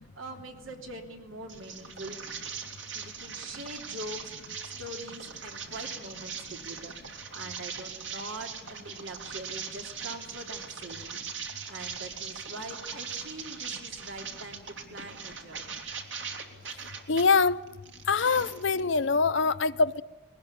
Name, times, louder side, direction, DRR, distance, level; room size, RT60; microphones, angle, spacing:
voice 1, 0.1-2.2 2.9-6.9 7.3-15.6, right 1 dB, 85° right, 3.3 m, -43 dB
sound 1, 1.5-17.2 17.7-19.0, right 6 dB, 65° right, 2.8 m, -40 dB
voice 2, 17.1-17.6 18.1-20.0, left 4 dB, 65° left, 0.7 m, -24 dB
21.5 x 19.0 x 9.9 m
head